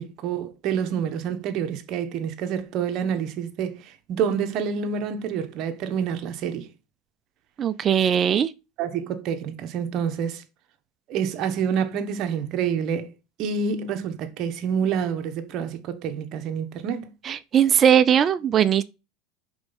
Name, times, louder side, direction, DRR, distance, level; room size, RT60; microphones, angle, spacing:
voice 1, 0.0-6.7 8.8-10.4 11.1-13.1 13.4-17.1, right 7 dB, 50° right, 1.1 m, -28 dB
voice 2, 7.6-8.5 17.2-18.8, right 9 dB, 30° right, 0.4 m, -19 dB
5.2 x 4.0 x 5.3 m
supercardioid pair, 125°, 0 cm